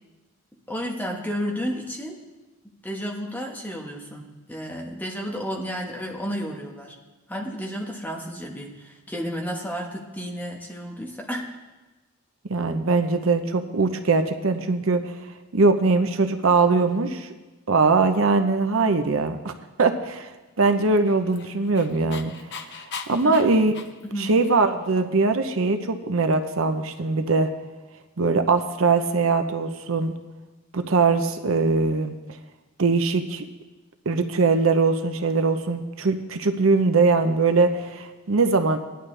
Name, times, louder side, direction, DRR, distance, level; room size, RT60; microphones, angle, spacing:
voice 1, 0.7-2.2 2.8-7.0 7.3-11.5 23.2-23.5 24.0-24.3, equal, 10° left, -1 dB, 1.3 m, -32 dB
voice 2, 12.5-15.2 15.5-17.3 17.7-19.5 19.8-20.3 20.6-22.7 23.1-23.7 24.2-27.5 28.2-30.1 30.7-32.1 32.8-33.5 34.1-38.8, right 3 dB, 65° right, 7 dB, 0.7 m, -21 dB
Dog, 20.9-24.7, left 6 dB, 50° left, 0.7 m, -40 dB
17.5 x 11.0 x 3.3 m, 1.2 s
head